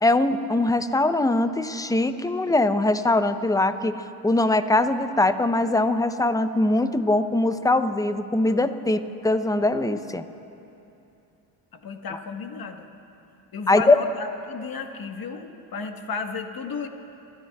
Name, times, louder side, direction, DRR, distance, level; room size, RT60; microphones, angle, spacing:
voice 1, 0.0-10.2 13.7-14.0, left 2 dB, 5° left, 11 dB, 0.7 m, -22 dB
voice 2, 11.8-12.9 13.5-16.9, left 5 dB, 45° left, 6 dB, 1.4 m, -33 dB
27.0 x 13.5 x 2.4 m, 2.8 s
hypercardioid pair, 55°, 50 cm